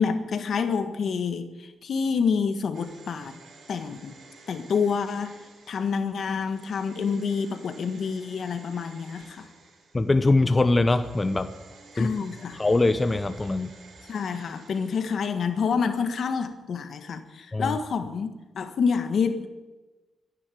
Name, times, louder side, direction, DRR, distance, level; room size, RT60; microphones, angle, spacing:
voice 1, 0.0-3.4 3.7-4.2 4.5-5.4 5.7-9.5 11.9-12.6 14.1-19.5, left 5 dB, 70° left, 8 dB, 1.5 m, -28 dB
sound 1, 2.7-10.3 10.8-15.5 15.8-15.9, right 3 dB, 80° right, 5.3 m, -52 dB
voice 2, 9.9-11.5 12.0-12.2 12.5-13.7 17.5-17.8, left 2 dB, 25° left, 9 dB, 0.8 m, -22 dB
13.5 x 10.5 x 9.2 m, 1.2 s
cardioid pair, 105°, 0 cm